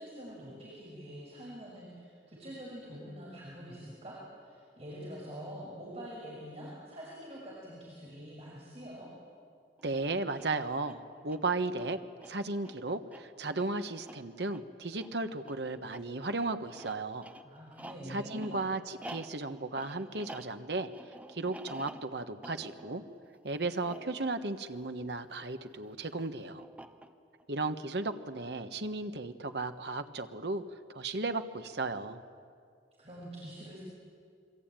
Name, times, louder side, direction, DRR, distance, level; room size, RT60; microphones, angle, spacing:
voice 1, 0.0-9.1 17.4-18.6 33.0-33.8, equal, 35° right, -5 dB, 6.1 m, -45 dB
sound 1, 9.8-25.6 26.6-27.4, right 1 dB, 10° right, 0.9 m, -51 dB
voice 2, 9.8-12.0 12.3-17.3 18.1-20.9 21.3-23.0 23.4-26.6 27.5-30.6 30.9-32.2, right 3 dB, 65° right, 8 dB, 1.4 m, -35 dB
27.5 x 23.0 x 9.1 m, 2.3 s
head